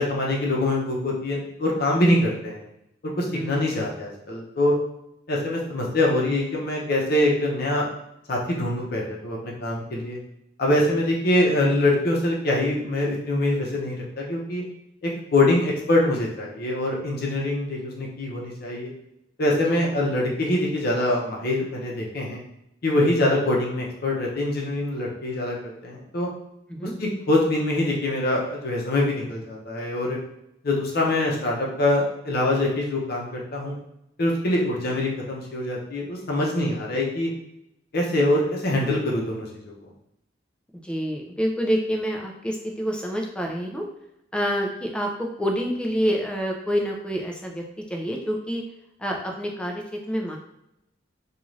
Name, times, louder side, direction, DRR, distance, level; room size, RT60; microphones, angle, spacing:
voice 1, 0.0-2.6 3.0-4.7 5.3-7.9 8.3-10.2 10.6-14.6 15.0-18.9 19.4-22.4 22.8-26.3 27.0-30.2 30.6-33.7 34.2-37.3 37.9-39.7, left 1 dB, 55° left, -2 dB, 0.7 m, -24 dB
voice 2, 40.8-43.8 44.3-48.6 49.0-50.4, equal, 5° left, 0 dB, 0.4 m, -27 dB
2.5 x 2.4 x 3.1 m, 0.83 s
head